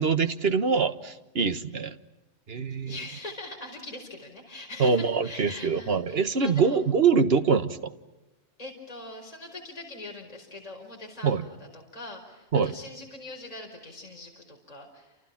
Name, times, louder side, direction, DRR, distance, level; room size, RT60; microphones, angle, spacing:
voice 1, 0.0-1.9 2.5-3.0 4.8-7.8 11.2-11.4 12.5-12.7, right 5 dB, 50° right, 10 dB, 1.6 m, -24 dB
voice 2, 2.7-6.8 8.6-15.1, left 2 dB, 30° left, 0 dB, 4.8 m, -42 dB
29.5 x 29.0 x 5.9 m, 1.0 s
omnidirectional pair, 1.4 m